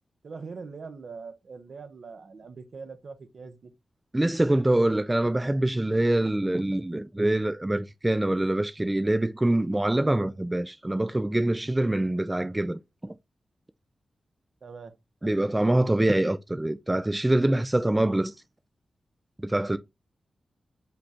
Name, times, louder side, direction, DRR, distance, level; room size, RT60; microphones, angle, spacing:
voice 1, 0.2-3.7 14.6-14.9, right 4 dB, 65° right, 0.8 m, -42 dB
voice 2, 4.1-13.2 15.2-18.3 19.4-19.8, right 1 dB, 20° right, 0.4 m, -25 dB
5.1 x 2.3 x 4.3 m
cardioid pair, 50°, 0 cm